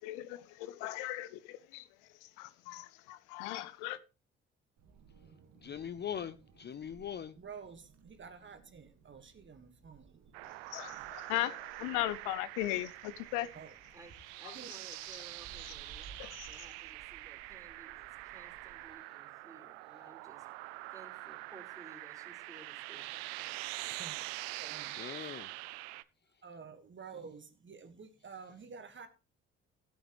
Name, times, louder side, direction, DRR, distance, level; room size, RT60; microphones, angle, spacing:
voice 1, 0.0-1.9 2.2-4.0 10.4-11.5 11.8-13.5 16.2-16.5, left 15 dB, 75° left, 0.6 m, -38 dB
Wind, 4.8-19.0, right 5 dB, 55° right, 1.8 m, -60 dB
voice 2, 5.6-7.4 25.0-25.5, left 8 dB, 35° left, 0.6 m, -41 dB
voice 3, 7.4-10.2 10.9-11.1 13.5-13.7 14.5-14.7 23.9-24.2 24.6-25.4 26.4-29.1, right 5 dB, 35° right, 1.6 m, -50 dB
sound 1, 10.3-26.0, right 20 dB, 80° right, 0.5 m, -45 dB
voice 4, 13.9-16.1 16.5-20.5 20.9-23.7, right 2 dB, 10° right, 4.1 m, -57 dB
15.5 x 8.4 x 3.1 m
hypercardioid pair, 50°, 32 cm